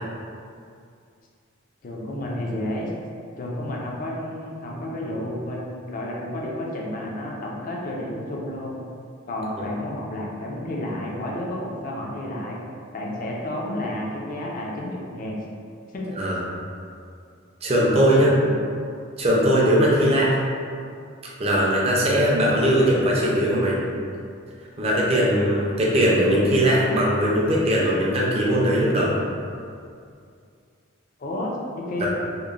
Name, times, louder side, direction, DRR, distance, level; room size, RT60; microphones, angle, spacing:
voice 1, 1.8-2.9 3.4-8.8 9.3-12.6 12.9-15.4 15.9-16.1 18.1-18.6 31.2-32.1, left 1 dB, 40° left, -2 dB, 0.4 m, -31 dB
voice 2, 17.6-18.3 19.2-20.4 21.4-23.8 24.8-29.2 32.0-32.1, equal, 30° right, -5 dB, 0.4 m, -20 dB
2.9 x 2.0 x 2.4 m, 2.3 s
head